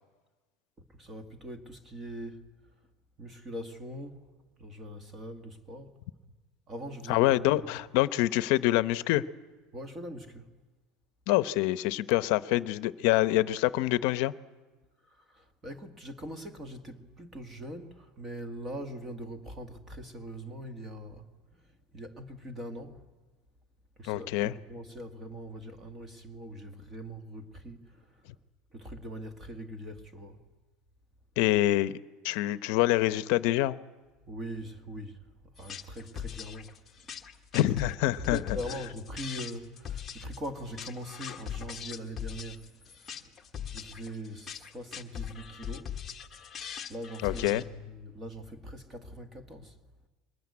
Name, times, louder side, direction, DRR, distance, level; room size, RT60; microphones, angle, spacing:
voice 1, 1.0-2.4 3.2-4.2 4.6-5.9 6.7-7.6 9.7-10.5 15.2-21.3 21.9-23.0 24.0-28.1 28.7-30.4 34.3-35.2 35.6-36.7 38.2-43.3 43.7-46.0 46.9-49.8, equal, 20° right, 1.7 m, -42 dB
voice 2, 7.1-9.2 11.3-14.3 24.0-24.5 31.4-32.0 32.2-33.8 37.5-38.6 47.2-47.6, left 16 dB, 60° left, 0.8 m, -26 dB
sound 1, 35.6-47.6, left 9 dB, 15° left, 1.3 m, -40 dB
22.5 x 20.0 x 9.6 m
cardioid pair, 170°, 0 cm